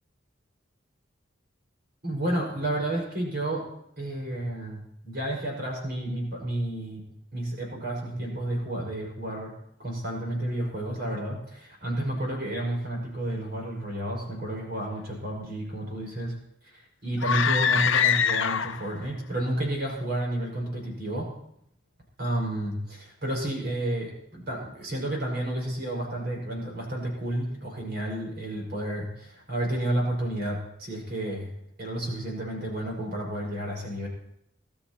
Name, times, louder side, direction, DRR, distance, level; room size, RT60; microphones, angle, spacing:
voice 1, 2.0-3.6 4.0-7.0 7.3-9.5 9.8-16.4 16.7-21.3 22.2-31.5 31.8-34.1, right 1 dB, 50° right, -1 dB, 5.4 m, -31 dB
sound 1, 17.2-19.0, left 7 dB, 75° left, 0.7 m, -23 dB
22.0 x 12.5 x 3.0 m, 0.73 s
head